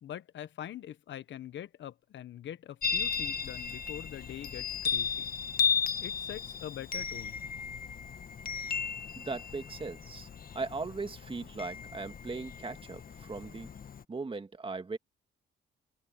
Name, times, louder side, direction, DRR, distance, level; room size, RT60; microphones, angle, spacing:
voice 1, 0.0-5.3 6.0-7.4, left 11 dB, 65° left, 1.2 m, -43 dB
Chime, 2.8-14.0, left 6 dB, 45° left, 1.5 m, -35 dB
voice 2, 9.2-10.3 10.5-13.7 14.1-15.0, right 4 dB, 25° right, 2.0 m, -38 dB
open air
cardioid pair, 90°, 20 cm